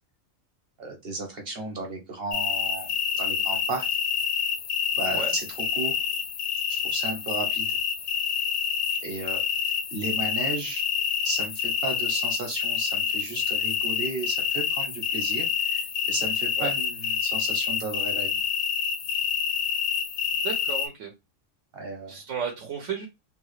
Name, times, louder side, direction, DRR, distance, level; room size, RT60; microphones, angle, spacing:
voice 1, 0.8-3.9 4.9-6.0 6.7-7.8 9.0-10.8 11.2-18.4 21.7-22.2, right 3 dB, 55° right, 1 dB, 1.2 m, -34 dB
sound 1, 2.3-20.9, left 6 dB, 60° left, 0.8 m, -27 dB
voice 2, 20.4-21.1 22.1-23.1, right 6 dB, 75° right, 3 dB, 1.1 m, -33 dB
3.4 x 2.4 x 3.1 m, 0.23 s
omnidirectional pair, 1.3 m